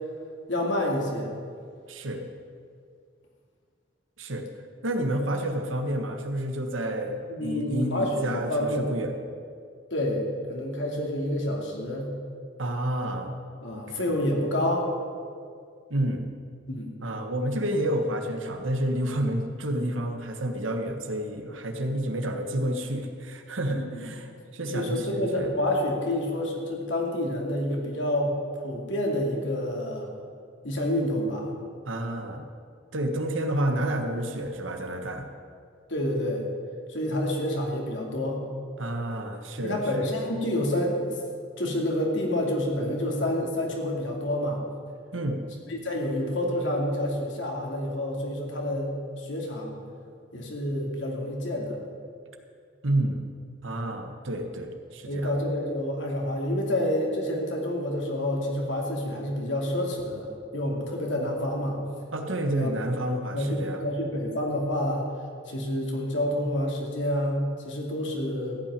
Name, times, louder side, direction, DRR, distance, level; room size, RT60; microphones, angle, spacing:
voice 1, 0.5-1.3 7.3-8.9 9.9-12.1 13.6-14.9 16.7-16.9 23.7-24.1 24.7-28.3 28.6-30.1 30.6-31.5 35.9-36.4 36.9-38.4 39.6-41.2 41.6-44.6 45.7-48.9 49.2-49.8 50.3-51.8 55.1-60.3 60.5-61.8 62.5-62.8 63.3-65.0 65.5-68.6, left 1 dB, 70° left, 0 dB, 2.6 m, -28 dB
voice 2, 1.9-2.3 4.2-4.4 4.8-9.1 12.6-13.4 13.7-14.1 15.9-16.3 17.0-25.5 31.8-32.5 32.9-35.3 38.8-40.1 45.1-45.4 52.8-53.3 53.6-55.3 62.1-64.0, right 1 dB, 90° right, 4 dB, 1.5 m, -29 dB
14.5 x 6.0 x 9.8 m, 2.2 s
head